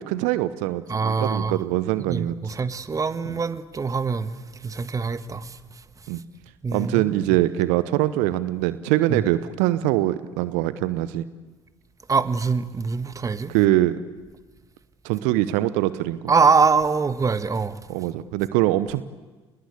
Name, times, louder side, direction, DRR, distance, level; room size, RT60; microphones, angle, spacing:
voice 1, 0.0-2.5 3.3-3.4 6.1-6.2 6.7-11.2 13.5-14.0 15.0-16.2 17.9-19.0, right 15 dB, 60° right, 0.9 m, -23 dB
voice 2, 0.9-1.6 2.1-4.4 4.6-5.6 6.6-7.1 9.1-9.2 12.1-13.5 16.3-17.7, right 5 dB, 25° right, 1.5 m, -23 dB
29.0 x 21.0 x 8.5 m
figure-of-eight pair, 60°, 14 cm